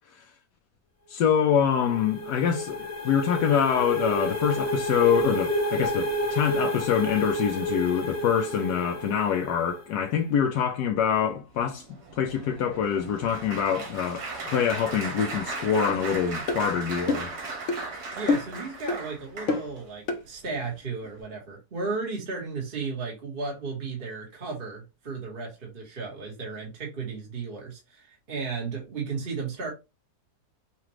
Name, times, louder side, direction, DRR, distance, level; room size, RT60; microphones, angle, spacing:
voice 1, 1.1-11.8 12.1-17.3, left 8 dB, 85° left, 1.2 m, -25 dB
sound 1, 1.3-10.0, equal, 15° left, 0.8 m, -30 dB
Applause, 11.6-19.9 20.5-20.8 21.0-21.2, right 3 dB, 75° right, 2.0 m, -37 dB
sound 2, 15.9-16.0 16.5-16.6 17.1-17.3 17.7-17.8 18.3-18.6 18.9-19.0 19.5-19.7 20.1-20.2, left 4 dB, 60° left, 0.9 m, -26 dB
voice 2, 18.1-29.7, right 4 dB, 35° right, 1.5 m, -34 dB
5.9 x 2.5 x 3.0 m
omnidirectional pair, 1.7 m